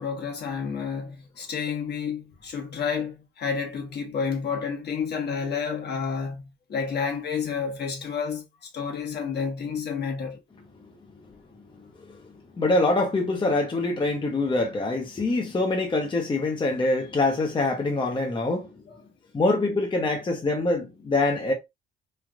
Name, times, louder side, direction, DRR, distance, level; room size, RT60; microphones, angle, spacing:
voice 1, 0.0-8.4 8.7-10.4, left 6 dB, 55° left, 1.2 m, -30 dB
voice 2, 12.6-18.7 19.3-21.5, left 2 dB, 25° left, 0.7 m, -24 dB
3.2 x 2.3 x 2.4 m
cardioid pair, 90°, 20 cm